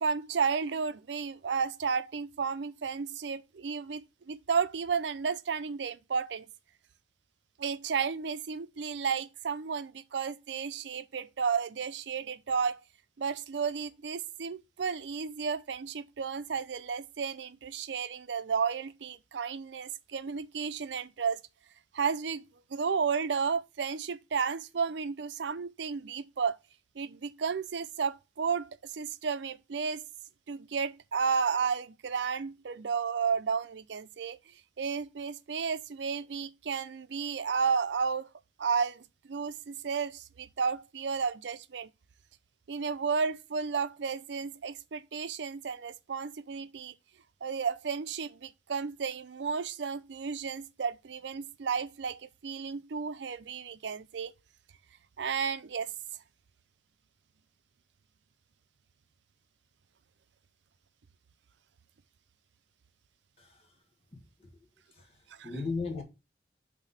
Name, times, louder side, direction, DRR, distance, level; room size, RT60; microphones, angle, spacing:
voice 1, 0.0-6.5 7.6-12.8 13.2-21.4 21.9-22.4 22.7-26.6 27.0-30.0 30.5-34.4 34.8-38.3 38.6-41.9 42.7-46.9 47.4-54.3 55.2-55.9 65.4-65.5, right 6 dB, 85° right, 0.5 m, -32 dB
voice 2, 63.4-63.7 64.1-64.5 64.9-66.0, left 4 dB, 35° left, 1.7 m, -37 dB
6.0 x 3.6 x 5.5 m
head